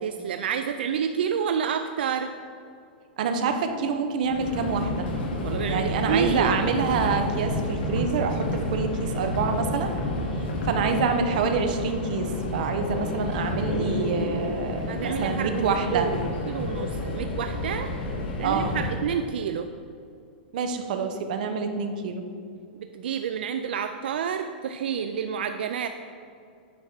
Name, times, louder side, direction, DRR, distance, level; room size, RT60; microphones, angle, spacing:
voice 1, 0.0-2.3 5.4-6.6 14.9-17.9 18.4-19.7 22.8-25.9, right 7 dB, 80° right, 8 dB, 0.4 m, -29 dB
voice 2, 3.2-5.1 5.7-9.9 10.6-16.1 18.4-18.8 20.5-22.2, right 5 dB, 50° right, 6 dB, 0.9 m, -27 dB
Subway metro underground, 4.2-19.1, left 1 dB, 75° left, 1.7 m, -30 dB
9.3 x 4.3 x 6.3 m, 2.3 s
supercardioid pair, 170°, 5 cm